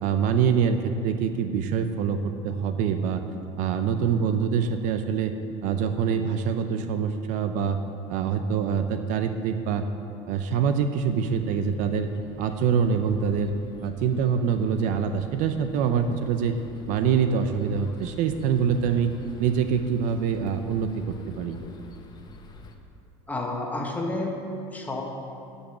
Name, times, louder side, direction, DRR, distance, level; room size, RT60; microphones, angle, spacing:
voice 1, 0.0-3.2 3.6-5.3 5.6-7.8 8.1-9.8 10.3-12.1 12.4-13.5 13.8-16.5 16.9-19.1 19.4-21.6, right 7 dB, 60° right, 8 dB, 0.6 m, -25 dB
sound 1, 11.0-22.7, left 3 dB, 30° left, 0.9 m, -48 dB
voice 2, 23.3-25.0, left 2 dB, 10° left, 0 dB, 1.4 m, -30 dB
9.9 x 5.4 x 7.2 m, 2.7 s
supercardioid pair, 115°, 15 cm